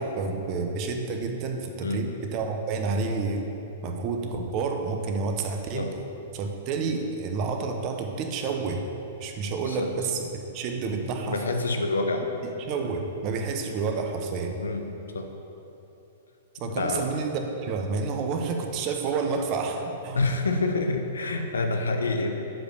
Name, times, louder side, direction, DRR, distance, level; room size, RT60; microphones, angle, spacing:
voice 1, 0.0-3.5 3.8-5.9 6.3-8.8 9.2-10.2 10.5-11.4 12.4-14.6 16.6-20.2, right 4 dB, 40° right, 4 dB, 0.9 m, -29 dB
voice 2, 9.6-9.9 11.2-12.2 14.6-15.3 16.6-17.2 20.1-22.3, left 3 dB, 85° left, 5 dB, 0.9 m, -27 dB
7.7 x 5.0 x 6.6 m, 2.9 s
hypercardioid pair, 115°, 0 cm